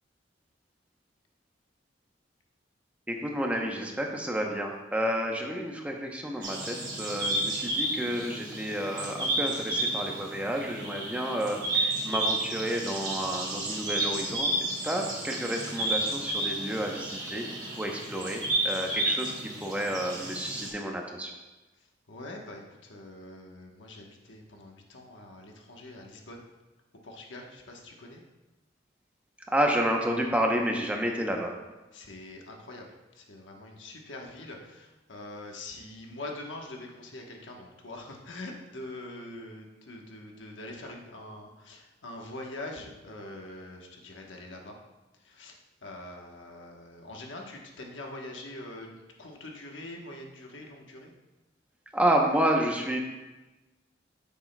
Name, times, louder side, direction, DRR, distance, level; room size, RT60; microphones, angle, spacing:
voice 1, 3.1-17.4 17.8-19.3 19.6-21.3 29.5-31.6 51.9-53.0, right 1 dB, 5° right, 1 dB, 0.7 m, -30 dB
sound 1, 6.4-20.7, right 1 dB, 25° right, 1.7 m, -32 dB
voice 2, 21.8-26.4 27.0-28.2 31.9-32.9 33.1-44.8 45.2-51.1, left 2 dB, 90° left, 1 dB, 1.1 m, -44 dB
9.7 x 7.2 x 2.2 m, 1.1 s
head